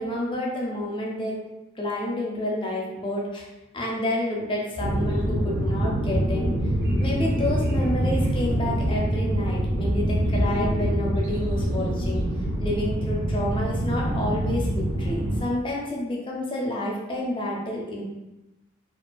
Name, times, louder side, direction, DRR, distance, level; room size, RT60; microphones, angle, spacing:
voice 1, 0.0-1.4 1.8-3.5 3.7-6.5 7.0-12.2 12.6-18.0, left 1 dB, 25° left, -3 dB, 0.4 m, -29 dB
sound 1, 4.8-15.4, equal, 60° right, 0.4 m, -25 dB
2.4 x 2.3 x 2.2 m, 1.0 s
head